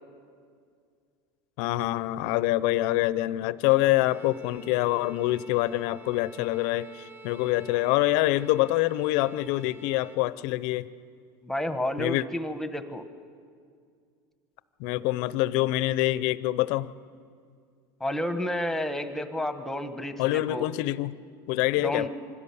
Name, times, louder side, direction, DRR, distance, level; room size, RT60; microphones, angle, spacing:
voice 1, 1.6-10.9 12.0-12.2 14.8-16.9 20.2-21.1 21.5-22.1, left 17 dB, 60° left, 17 dB, 0.7 m, -25 dB
Bowed string instrument, 3.9-10.3, right 3 dB, 20° right, 0.9 m, -48 dB
voice 2, 11.4-13.0 18.0-20.7 21.8-22.1, left 1 dB, 5° left, 8 dB, 1.2 m, -31 dB
25.0 x 16.0 x 7.1 m, 2.2 s
supercardioid pair, 130°, 11 cm